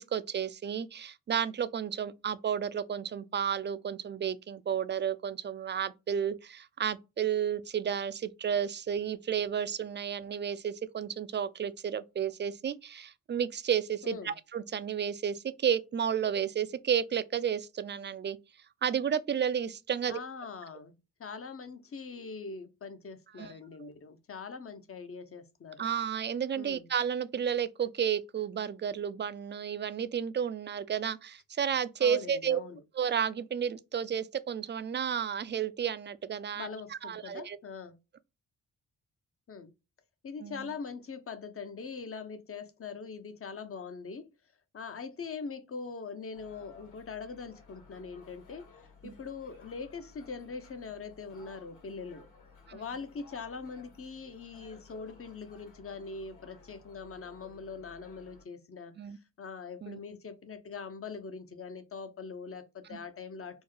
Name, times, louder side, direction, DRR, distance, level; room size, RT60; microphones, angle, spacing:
voice 1, 0.0-18.4 18.8-20.2 23.4-23.5 23.8-23.9 25.8-32.6 32.9-37.6 40.4-40.7 49.0-49.1 52.7-52.8 59.0-59.2 59.8-60.0 62.9-63.0, right 8 dB, 30° right, 0.4 m, -32 dB
voice 2, 14.0-14.3 20.1-20.9 21.2-25.8 26.5-26.9 32.0-32.8 36.5-37.9 39.5-39.7 40.2-44.3 44.7-48.7 49.0-52.3 52.7-59.0 59.4-63.6, left 5 dB, 40° left, 0.8 m, -42 dB
sound 1, 46.3-58.4, left 4 dB, 60° left, 2.1 m, -57 dB
4.5 x 2.1 x 3.1 m
supercardioid pair, 55°, 35 cm